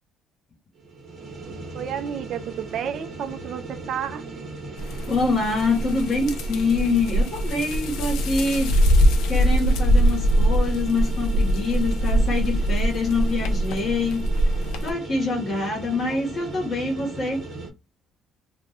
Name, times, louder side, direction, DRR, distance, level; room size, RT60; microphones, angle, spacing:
sound 1, 0.7-17.7, right 3 dB, 35° right, 0.7 m, -37 dB
voice 1, 1.7-4.2, right 8 dB, 50° right, 0.4 m, -31 dB
sound 2, 4.8-14.9, equal, 80° left, 0.5 m, -22 dB
voice 2, 5.1-8.7 9.3-14.3 14.8-17.4, left 3 dB, 30° left, 1.0 m, -25 dB
2.3 x 2.1 x 3.5 m
cardioid pair, 170°, 0 cm